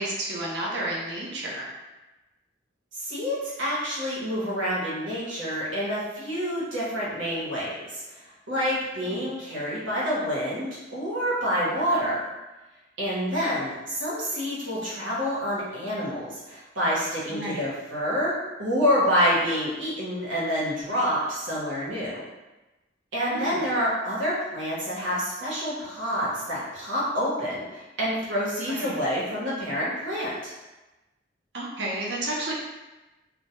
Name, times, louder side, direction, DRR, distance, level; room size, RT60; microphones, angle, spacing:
voice 1, 0.0-1.7 9.0-9.3 17.3-17.6 23.3-23.6 28.7-29.0 31.5-32.5, right 1 dB, 65° right, -4 dB, 0.6 m, -31 dB
voice 2, 3.0-8.0 8.5-12.3 13.0-22.2 23.1-30.5, equal, 90° right, -7 dB, 0.8 m, -27 dB
2.1 x 2.1 x 2.9 m, 1.1 s
head